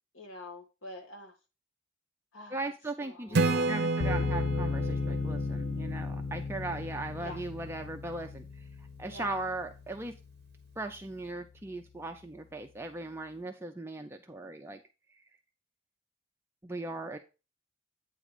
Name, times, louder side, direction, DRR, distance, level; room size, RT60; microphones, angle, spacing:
voice 1, 0.1-1.3 2.3-2.6 3.0-3.9 7.2-7.4 9.1-9.4, left 1 dB, 75° left, 1.7 m, -45 dB
voice 2, 2.5-8.5 9.0-10.1 10.8-14.8 16.6-17.2, right 2 dB, 10° right, 0.4 m, -38 dB
Acoustic guitar / Strum, 3.3-6.9, right 3 dB, 55° right, 0.7 m, -31 dB
sound 1, 4.0-11.1, left 4 dB, 55° left, 0.4 m, -35 dB
9.0 x 3.8 x 4.9 m
head